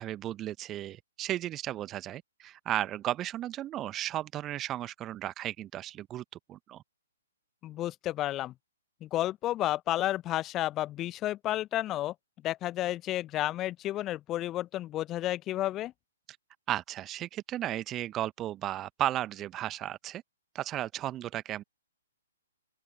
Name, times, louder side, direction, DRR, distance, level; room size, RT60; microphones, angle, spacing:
voice 1, 0.0-6.8 16.7-20.2 20.5-21.6, right 13 dB, 20° right, 1.2 m, -34 dB
voice 2, 7.6-8.5 9.0-12.1 12.4-15.9, left 14 dB, 20° left, 0.7 m, -31 dB
open air
figure-of-eight pair, 120°, 0 cm